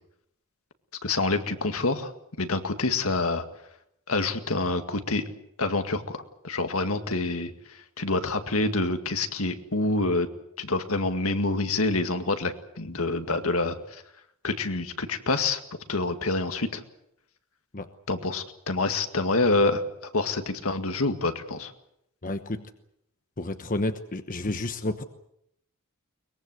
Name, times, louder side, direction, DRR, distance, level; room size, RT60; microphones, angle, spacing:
voice 1, 1.0-2.1 2.4-3.4 4.1-5.2 5.6-10.3 10.6-14.0 14.4-15.6 15.9-16.8 18.1-19.8 20.1-21.7, left 3 dB, 75° left, 7 dB, 2.0 m, -27 dB
voice 2, 22.2-22.7 23.4-25.0, left 2 dB, 40° left, 8 dB, 1.0 m, -30 dB
23.0 x 21.5 x 7.9 m, 0.76 s
head